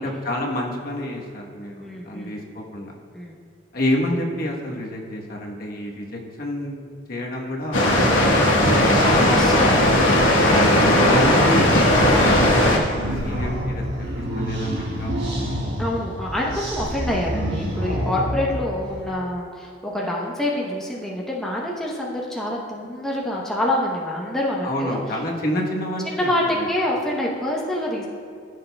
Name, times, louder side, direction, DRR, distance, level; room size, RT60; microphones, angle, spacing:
voice 1, 0.0-2.9 3.7-7.9 8.4-10.6 11.0-13.8 14.3-15.6 24.6-26.7, left 1 dB, 50° left, -1 dB, 1.1 m, -28 dB
voice 2, 1.8-2.4 3.1-3.4 9.3-9.9 15.8-25.0 26.1-28.1, left 1 dB, ahead, -4 dB, 0.8 m, -26 dB
Water, 7.7-12.8, left 1 dB, 80° left, 1.2 m, -17 dB
sound 1, 11.2-19.1, equal, 55° right, 1.6 m, -28 dB
14.5 x 6.5 x 2.2 m, 2.2 s
head